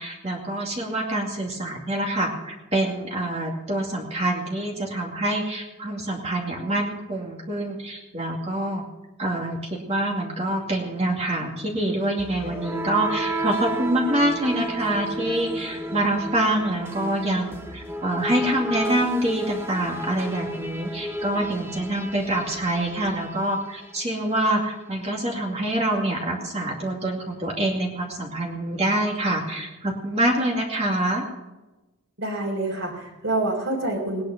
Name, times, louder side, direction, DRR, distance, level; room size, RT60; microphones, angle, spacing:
voice 1, 0.0-8.8 9.2-31.2, right 1 dB, 30° right, -1 dB, 2.4 m, -26 dB
sound 1, 12.2-24.1, right 1 dB, 10° right, 1.2 m, -32 dB
voice 2, 32.2-34.2, right 2 dB, 60° right, -4 dB, 3.7 m, -27 dB
19.0 x 10.5 x 6.0 m, 1.1 s
head